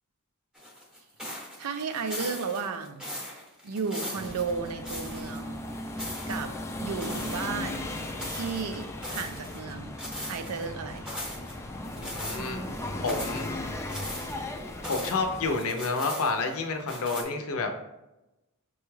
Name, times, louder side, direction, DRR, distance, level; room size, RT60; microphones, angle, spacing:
sound 1, 0.5-5.4 5.7-6.4 7.0-8.6 9.0-9.6 10.0-10.6 11.0-11.5 12.0-12.5 12.9-15.2 15.5-16.5 16.9-17.2, left 1 dB, 5° right, 0.8 m, -39 dB
voice 1, 1.6-3.1 3.6-5.6 6.3-6.5 6.8-7.9 8.3-10.0 10.3-11.1, right 5 dB, 80° right, 8 dB, 0.4 m, -34 dB
sound 2, 4.1-15.6, left 1 dB, 10° left, 0.3 m, -37 dB
voice 2, 12.0-12.7 13.0-13.7 14.9-17.7, left 3 dB, 65° left, 5 dB, 0.6 m, -29 dB
6.1 x 2.3 x 3.1 m, 0.97 s
head